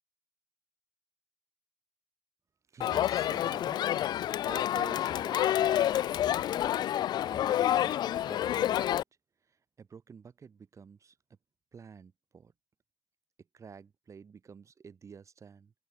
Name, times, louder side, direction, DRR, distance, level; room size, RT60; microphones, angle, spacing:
voice 1, 2.7-4.1 4.4-9.0 9.5-11.2 11.7-12.5 13.5-15.7, right 6 dB, 35° right, 4.9 m, -50 dB
Crowd, 2.8-9.0, left 12 dB, 50° left, 0.4 m, -28 dB
open air
cardioid pair, 120°, 9 cm